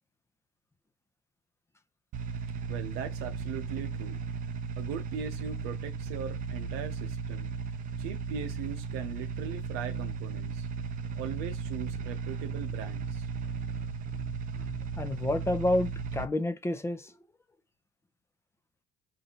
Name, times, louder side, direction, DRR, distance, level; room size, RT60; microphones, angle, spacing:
sound 1, 2.1-16.2, right 5 dB, 55° right, 0.6 m, -36 dB
voice 1, 2.7-4.2 4.8-7.5 8.0-10.7 11.1-13.3, right 8 dB, 75° right, 0.9 m, -39 dB
voice 2, 15.0-17.0, left 1 dB, 15° left, 0.7 m, -29 dB
5.4 x 2.6 x 2.9 m
supercardioid pair, 75°, 17 cm